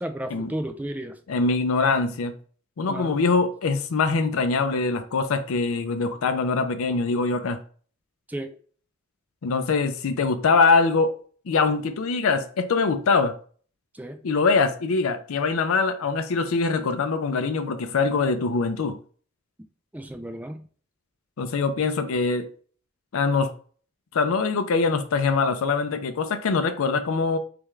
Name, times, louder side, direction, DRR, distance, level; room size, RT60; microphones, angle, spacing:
voice 1, 0.0-1.2 2.9-3.2 8.3-8.6 13.9-14.2 19.9-20.6, right 1 dB, 5° right, 0.4 m, -33 dB
voice 2, 1.3-2.3 2.8-7.6 9.4-11.1 11.5-13.3 14.2-19.0 21.4-22.5 23.1-23.5 24.1-27.4, left 4 dB, 80° left, 0.4 m, -23 dB
3.4 x 3.4 x 3.1 m
head